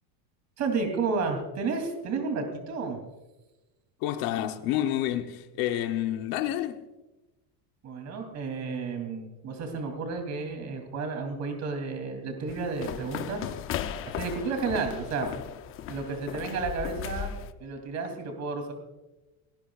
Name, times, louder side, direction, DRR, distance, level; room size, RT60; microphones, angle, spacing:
voice 1, 0.6-3.0 7.8-13.5 14.0-15.3 15.9-17.3 17.6-18.7, right 4 dB, 35° right, 3.1 m, -32 dB
voice 2, 4.0-6.8, left 12 dB, 45° left, 1.0 m, -29 dB
sound 1, 12.5-17.5, left 9 dB, 30° left, 0.6 m, -36 dB
27.5 x 19.5 x 2.4 m
cardioid pair, 165°, 47 cm